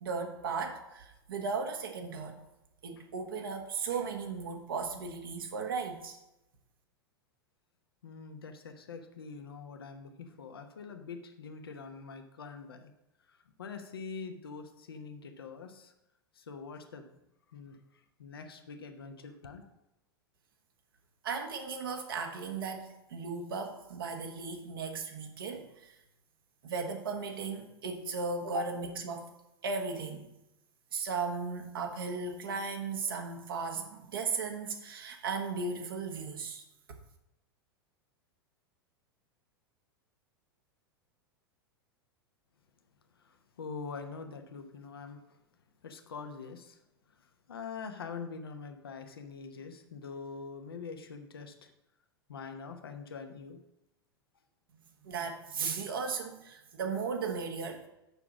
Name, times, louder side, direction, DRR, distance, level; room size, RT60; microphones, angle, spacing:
voice 1, 0.0-2.4 2.8-6.2 21.2-25.9 26.6-29.3 29.6-30.3 30.9-36.6 55.0-57.9, right 4 dB, 65° right, 3 dB, 1.4 m, -36 dB
voice 2, 8.0-12.9 13.3-15.9 16.4-17.1 17.5-17.8 18.2-19.7 43.2-45.2 45.8-46.8 47.5-51.7 52.3-53.6, left 5 dB, 75° left, 6 dB, 0.9 m, -44 dB
7.0 x 5.9 x 5.9 m, 0.90 s
figure-of-eight pair, 90°, 13 cm